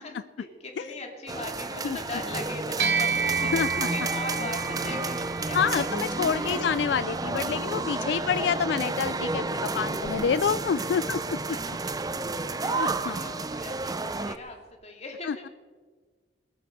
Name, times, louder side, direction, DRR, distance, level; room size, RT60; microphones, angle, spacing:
voice 1, 0.0-5.9 6.1-6.7 8.0-8.3 11.5-11.8 12.4-15.5, left 2 dB, 40° left, 2 dB, 2.4 m, -39 dB
sound 1, 1.3-14.4, right 3 dB, 20° right, 0.5 m, -31 dB
sound 2, 2.8-12.4, right 5 dB, 65° right, 1.0 m, -33 dB
voice 2, 3.5-3.9 5.5-11.6 12.5-13.2 15.2-15.5, left 7 dB, 70° left, 15 dB, 0.3 m, -28 dB
21.0 x 8.5 x 6.5 m, 1.4 s
head